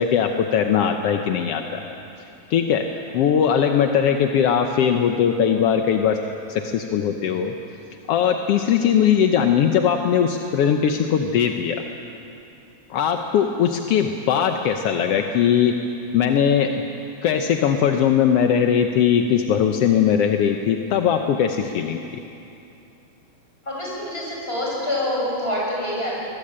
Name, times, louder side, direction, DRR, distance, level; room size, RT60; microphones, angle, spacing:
voice 1, 0.0-1.9 2.5-2.9 3.1-6.2 6.5-7.5 8.1-11.8 12.9-15.8 16.1-16.7 17.2-22.0, left 8 dB, 65° left, 5 dB, 1.5 m, -20 dB
voice 2, 23.6-26.1, left 1 dB, 15° left, -4 dB, 7.6 m, -26 dB
24.5 x 20.0 x 8.7 m, 2.7 s
omnidirectional pair, 3.7 m